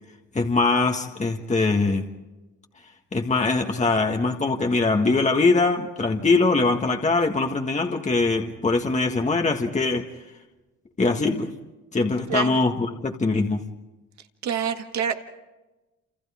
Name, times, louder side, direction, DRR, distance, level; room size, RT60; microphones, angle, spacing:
voice 1, 0.3-2.0 3.1-10.1 11.0-11.5 11.9-13.6, left 3 dB, 25° left, 3 dB, 1.7 m, -22 dB
voice 2, 14.4-15.2, right 8 dB, 65° right, 6 dB, 2.0 m, -26 dB
29.5 x 28.5 x 3.7 m, 1.1 s
cardioid pair, 90°, 30 cm